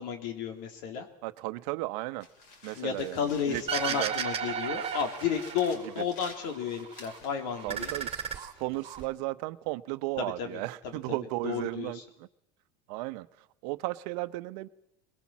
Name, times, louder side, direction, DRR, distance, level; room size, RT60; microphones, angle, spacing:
voice 1, 0.0-1.1 2.7-7.9 10.2-10.6 11.1-11.2 11.4-12.0, left 7 dB, 75° left, 3.1 m, -32 dB
voice 2, 1.2-2.3 2.6-3.6 3.9-4.1 6.0-6.1 7.6-12.3 12.9-13.3 13.6-14.7, right 20 dB, 75° right, 1.0 m, -35 dB
sound 1, 2.2-4.4 4.8-9.1, left 3 dB, 55° left, 6.1 m, -52 dB
sound 2, 3.7-6.0 6.4-7.2 7.5-9.0, right 8 dB, 25° right, 2.3 m, -34 dB
23.0 x 21.0 x 7.4 m
supercardioid pair, 135°, 21 cm